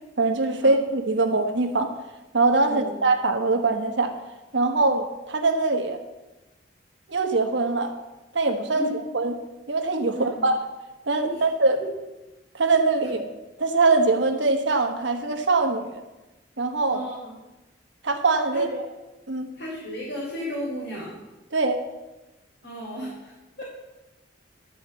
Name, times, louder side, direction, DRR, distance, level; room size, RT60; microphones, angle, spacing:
voice 1, 0.2-1.9 2.3-4.1 4.5-6.0 7.1-7.9 8.3-8.9 9.1-9.3 9.7-10.6 11.1-11.8 12.5-13.3 13.6-16.0 16.6-17.0 18.0-18.9 19.3-19.5 21.5-21.8, right 3 dB, 80° right, 5 dB, 1.2 m, -22 dB
voice 2, 10.1-10.4 11.2-11.4 16.9-17.3 18.5-18.6 19.6-21.2 22.6-23.3 23.6-23.7, equal, 70° left, -8 dB, 3.5 m, -34 dB
12.5 x 4.9 x 7.4 m, 1.1 s
head